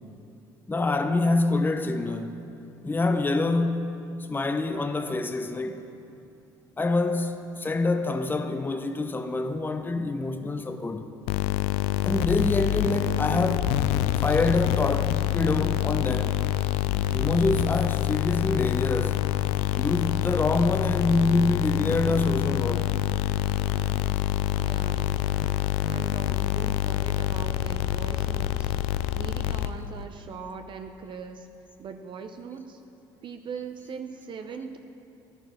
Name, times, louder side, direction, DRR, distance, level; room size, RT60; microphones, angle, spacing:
voice 1, 0.7-2.4 2.8-5.9 6.8-11.1 12.0-13.8 14.2-16.4 17.1-19.2 19.7-22.9, left 2 dB, 20° left, 0.8 m, -26 dB
sound 1, 11.3-30.0, left 14 dB, 75° left, 0.4 m, -26 dB
voice 2, 24.6-25.2 25.6-28.7 29.1-31.5 31.8-32.8 33.2-34.8, right 5 dB, 50° right, 0.7 m, -40 dB
11.5 x 9.0 x 6.2 m
hypercardioid pair, 65°, 10 cm